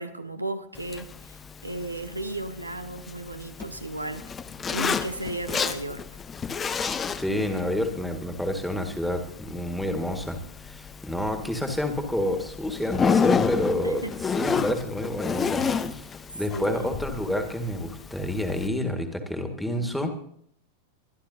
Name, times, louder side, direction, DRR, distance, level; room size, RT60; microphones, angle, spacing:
voice 1, 0.0-4.3 4.7-6.0 13.8-14.1 16.5-16.9, right 2 dB, 85° right, 0.8 m, -35 dB
Zipper (clothing), 0.7-18.7, left 6 dB, 20° left, 0.7 m, -31 dB
voice 2, 7.2-16.1 16.3-20.1, left 1 dB, ahead, 1.8 m, -29 dB
23.5 x 11.5 x 2.7 m
figure-of-eight pair, 90°, 0 cm